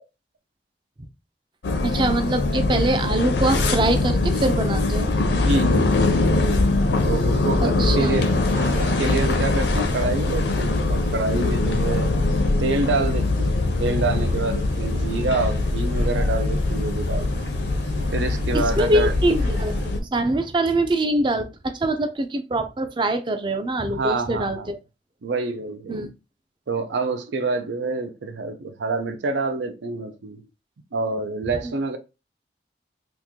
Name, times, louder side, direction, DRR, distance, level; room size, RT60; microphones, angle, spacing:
sound 1, 1.6-20.0, left 2 dB, 75° left, 0.5 m, -22 dB
voice 1, 1.8-5.4 7.6-8.2 18.5-24.8 25.9-26.1 31.6-31.7, right 1 dB, 25° right, 0.4 m, -24 dB
sound 2, 4.2-19.9, equal, 55° right, 1.1 m, -38 dB
voice 2, 5.3-6.6 7.1-12.1 12.6-17.3 18.1-19.1 23.9-24.7 25.2-26.0 26.7-30.4 30.9-32.0, right 3 dB, 85° right, 0.5 m, -27 dB
2.9 x 2.4 x 3.6 m
head